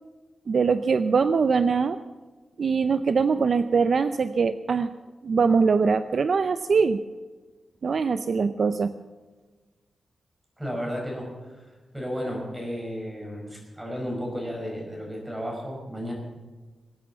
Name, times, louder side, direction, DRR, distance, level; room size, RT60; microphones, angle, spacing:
voice 1, 0.5-2.0 2.6-4.9 5.2-7.0 7.8-8.9, right 5 dB, 50° right, 11 dB, 0.5 m, -22 dB
voice 2, 10.6-16.1, equal, 5° right, -1 dB, 5.4 m, -33 dB
21.5 x 8.7 x 7.2 m, 1.3 s
wide cardioid pair, 155°, 0 cm